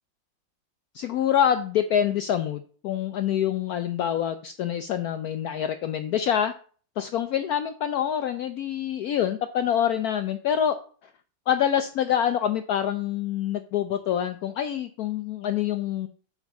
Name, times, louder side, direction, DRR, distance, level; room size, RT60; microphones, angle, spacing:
voice 1, 0.9-6.5 7.0-10.8 11.5-16.1, left 9 dB, 80° left, 9 dB, 0.8 m, -26 dB
7.3 x 4.5 x 5.2 m, 0.43 s
omnidirectional pair, 2.1 m